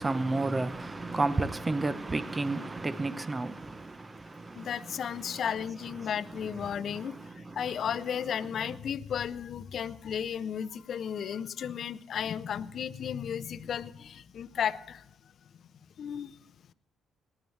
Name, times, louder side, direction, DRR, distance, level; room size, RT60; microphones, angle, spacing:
voice 1, 0.0-5.4 6.0-7.7, right 2 dB, 25° right, 0.7 m, -33 dB
voice 2, 4.6-7.1 7.6-15.0 16.0-16.4, left 8 dB, 60° left, 0.5 m, -34 dB
19.0 x 10.5 x 3.2 m
cardioid pair, 90°, 0 cm